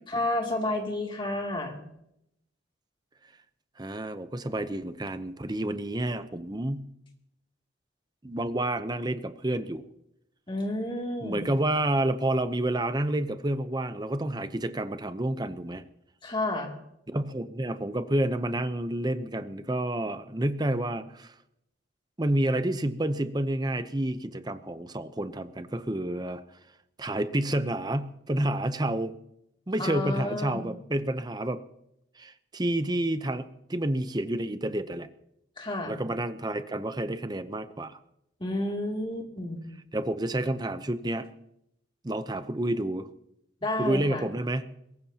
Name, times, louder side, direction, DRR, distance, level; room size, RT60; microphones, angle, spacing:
voice 1, 0.1-1.8 10.5-11.5 16.2-16.7 29.8-30.7 35.6-36.0 38.4-39.7 43.6-44.3, left 1 dB, 25° left, 1 dB, 2.7 m, -31 dB
voice 2, 3.8-6.9 8.2-9.8 11.2-15.8 17.1-21.3 22.2-26.4 27.0-29.2 29.7-31.6 32.2-35.1 35.9-38.0 39.9-41.3 42.0-43.1 43.8-44.7, right 1 dB, 20° right, 11 dB, 0.7 m, -29 dB
22.5 x 17.5 x 2.9 m, 0.79 s
head